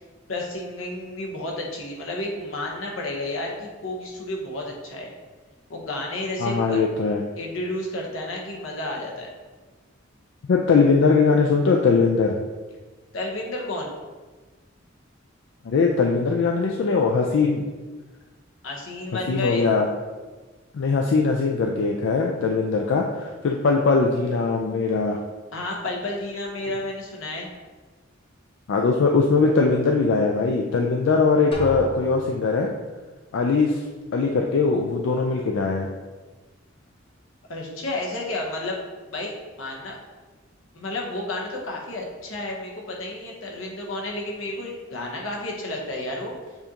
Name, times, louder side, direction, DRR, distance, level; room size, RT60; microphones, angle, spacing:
voice 1, 0.3-5.1 5.7-6.8 7.4-9.3 13.1-13.9 18.6-19.7 25.5-27.5 37.5-38.8 39.0-40.0 40.7-46.4, left 2 dB, 85° left, -1 dB, 1.0 m, -31 dB
voice 2, 6.4-7.2 10.5-12.4 15.7-17.6 19.3-19.9 20.7-25.2 28.7-32.7 33.3-33.8 34.1-35.9, left 4 dB, 65° left, 1 dB, 0.4 m, -21 dB
Drum, 31.5-32.7, equal, 30° left, 0.7 m, -35 dB
7.0 x 2.6 x 2.9 m, 1.3 s
head